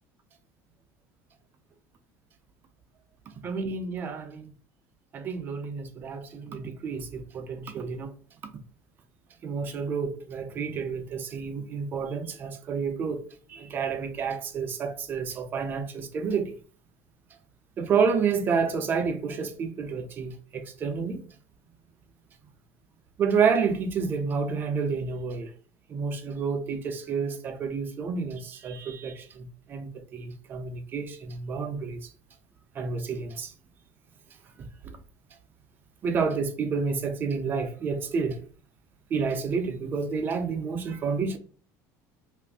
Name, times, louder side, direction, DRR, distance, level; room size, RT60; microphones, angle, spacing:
voice 1, 3.4-4.5 5.1-8.1 9.4-13.2 13.5-16.5 17.8-21.2 23.2-25.5 25.9-32.1 32.8-33.5 36.0-38.4 39.1-41.4, right 5 dB, 25° right, 0.3 m, -29 dB
3.0 x 2.4 x 3.4 m
cardioid pair, 175°, 8 cm